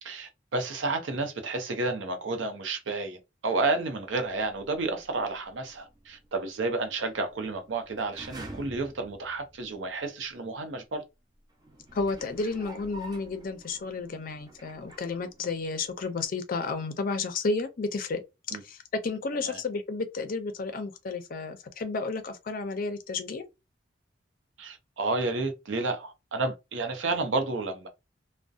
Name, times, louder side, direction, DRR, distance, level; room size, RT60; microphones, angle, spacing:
voice 1, 0.0-11.0 18.5-18.6 19.4-19.6 24.6-27.9, right 3 dB, 85° right, 0.6 m, -31 dB
sound 1, 3.9-10.0 10.6-10.7 11.5-15.8 16.1-16.2, right 1 dB, 20° right, 0.4 m, -49 dB
voice 2, 11.9-18.2 18.5-23.4, left 4 dB, 50° left, 0.4 m, -32 dB
2.6 x 2.1 x 2.3 m
head